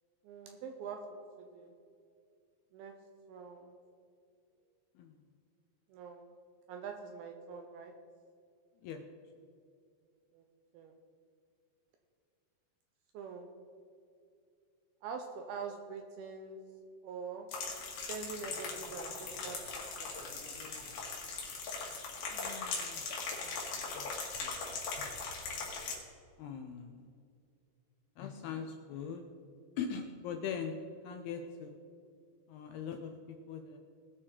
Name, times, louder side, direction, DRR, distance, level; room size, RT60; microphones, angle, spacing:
voice 1, 0.2-1.7 2.7-2.9 3.3-3.8 5.9-6.3 6.7-7.9 10.3-10.4 10.7-10.9 13.1-13.5 15.0-16.6 17.0-17.5 18.1-20.2, right 5 dB, 80° right, 4 dB, 2.4 m, -44 dB
sound 1, 17.5-25.9, left 4 dB, 55° left, 3.3 m, -40 dB
voice 2, 22.3-23.0 23.4-24.1 24.4-25.1 26.4-27.1 28.2-29.2 29.8-31.7 32.5-33.8, left 6 dB, 80° left, 5 dB, 2.3 m, -42 dB
19.5 x 6.6 x 4.4 m, 2.4 s
omnidirectional pair, 5.2 m